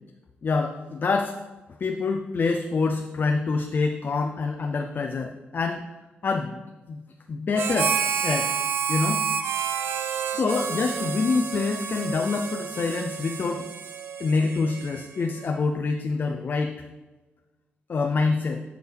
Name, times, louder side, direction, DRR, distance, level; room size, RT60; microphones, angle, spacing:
voice 1, 0.4-1.3 1.8-5.8 6.2-6.6 6.9-7.0 7.3-7.9 8.2-8.5 8.9-9.2 10.3-13.7 14.2-16.7 17.9-18.6, left 4 dB, 50° left, 4 dB, 0.5 m, -26 dB
Harmonica, 7.5-15.3, right 7 dB, 75° right, 0.5 m, -29 dB
6.8 x 6.3 x 3.4 m, 1.2 s
cardioid pair, 65°, 4 cm